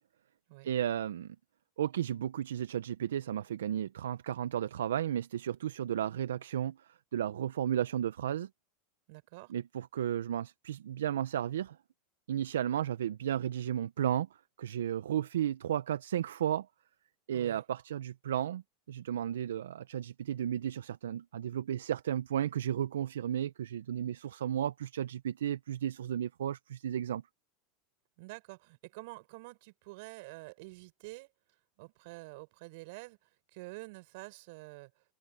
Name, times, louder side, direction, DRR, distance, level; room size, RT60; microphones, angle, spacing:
voice 1, 0.6-1.4 1.8-8.5 9.5-11.8 12.3-14.3 14.6-16.7 17.3-18.6 18.9-27.2, right 10 dB, 80° right, 0.8 m, -33 dB
voice 2, 9.1-9.5 17.3-17.6 28.2-31.3 31.8-34.9, right 25 dB, 65° right, 6.7 m, -48 dB
hypercardioid pair, 95°, 0 cm